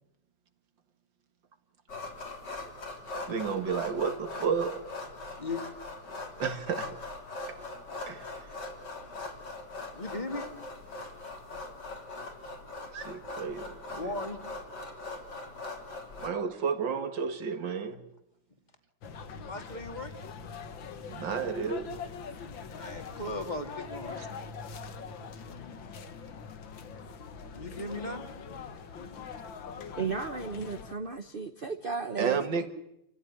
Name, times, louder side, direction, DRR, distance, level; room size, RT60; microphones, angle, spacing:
sound 1, 1.9-16.3, left 2 dB, 60° left, 4.2 m, -41 dB
voice 1, 3.3-5.0 6.4-7.1 8.1-8.4 12.9-14.1 16.2-18.0 21.1-21.9 24.2-24.3 32.2-32.7, right 6 dB, 70° right, 8 dB, 2.6 m, -32 dB
voice 2, 9.9-10.5 13.9-14.4 19.3-20.3 22.7-24.2 27.5-28.3, left 2 dB, 20° left, 5 dB, 2.9 m, -37 dB
sound 2, 19.0-31.0, left 5 dB, 80° left, 2.2 m, -43 dB
voice 3, 29.7-32.7, right 5 dB, 35° right, 8 dB, 1.1 m, -35 dB
28.5 x 15.0 x 9.8 m, 0.83 s
omnidirectional pair, 2.1 m